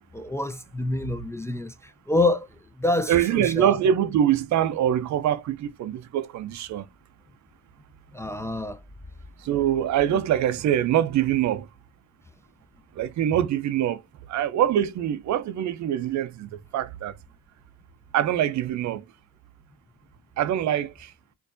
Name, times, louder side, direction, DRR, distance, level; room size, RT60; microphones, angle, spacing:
voice 1, 0.1-2.5 2.8-3.8 8.1-8.8, left 2 dB, 10° left, 0.3 m, -27 dB
voice 2, 3.1-6.9 9.4-11.7 12.9-14.0 14.3-17.1 18.1-19.1 20.4-21.1, right 10 dB, 65° right, 0.5 m, -24 dB
4.4 x 2.6 x 2.5 m
cardioid pair, 90°, 30 cm